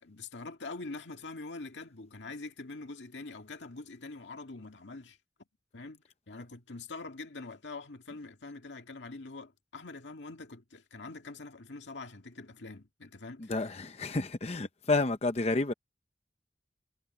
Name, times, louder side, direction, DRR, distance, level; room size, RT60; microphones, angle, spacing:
voice 1, 0.0-5.2 5.7-13.5, left 3 dB, 90° left, 2.0 m, -44 dB
voice 2, 13.4-15.7, left 3 dB, 35° left, 0.7 m, -30 dB
head